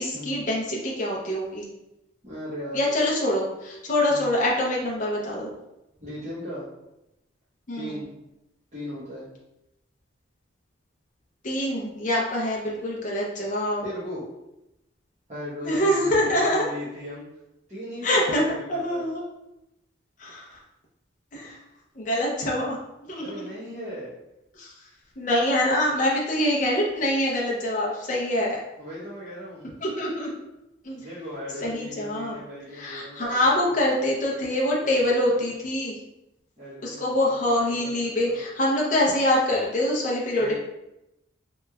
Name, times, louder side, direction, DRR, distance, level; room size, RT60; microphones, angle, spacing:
voice 1, 0.0-1.7 2.7-5.5 7.7-8.0 11.4-13.8 15.6-16.7 18.0-18.4 18.7-19.2 20.2-20.6 21.3-21.6 22.0-22.8 23.1-23.4 24.5-24.9 25.2-28.6 29.8-30.3 30.8-31.1 31.6-32.4 32.7-36.0 36.8-40.6, left 1 dB, 40° left, -3 dB, 0.5 m, -25 dB
voice 2, 2.2-2.8 4.1-4.4 6.0-6.7 7.7-8.2 8.7-9.3 13.8-14.2 15.3-17.3 17.7-19.0 23.2-24.2 28.8-29.7 31.0-35.5 36.6-38.4 40.4-40.6, equal, 35° right, -12 dB, 1.0 m, -38 dB
3.2 x 2.9 x 2.3 m, 0.91 s
head